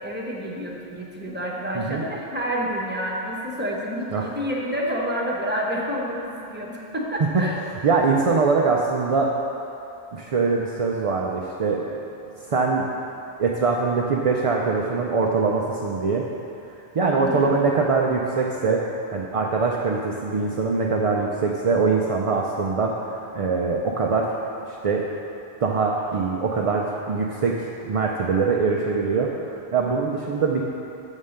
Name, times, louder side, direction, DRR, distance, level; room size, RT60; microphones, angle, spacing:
voice 1, 0.0-7.6 17.1-17.6, equal, 10° right, -3 dB, 1.1 m, -29 dB
voice 2, 7.8-9.3 10.1-12.0 12.5-12.9 13.4-16.2 16.9-18.8 19.1-24.3 24.7-25.0 25.6-30.6, right 4 dB, 45° right, -1 dB, 0.5 m, -23 dB
7.2 x 5.6 x 6.5 m, 2.9 s
omnidirectional pair, 1.1 m